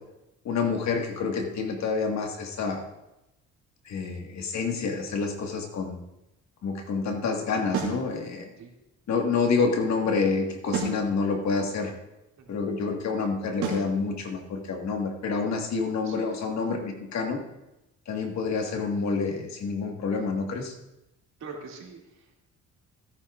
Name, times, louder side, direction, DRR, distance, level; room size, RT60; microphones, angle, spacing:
voice 1, 0.5-2.9 3.9-6.0 6.6-8.5 9.1-11.9 12.5-17.4 18.1-20.7, left 4 dB, 65° left, 3 dB, 1.8 m, -28 dB
sound 1, 7.7-8.0 10.7-11.0 13.6-13.9, right 4 dB, 90° right, 2.6 m, -28 dB
voice 2, 21.4-22.3, right 4 dB, 65° right, -1 dB, 2.6 m, -43 dB
16.5 x 9.9 x 2.5 m, 0.93 s
cardioid pair, 90°, 30 cm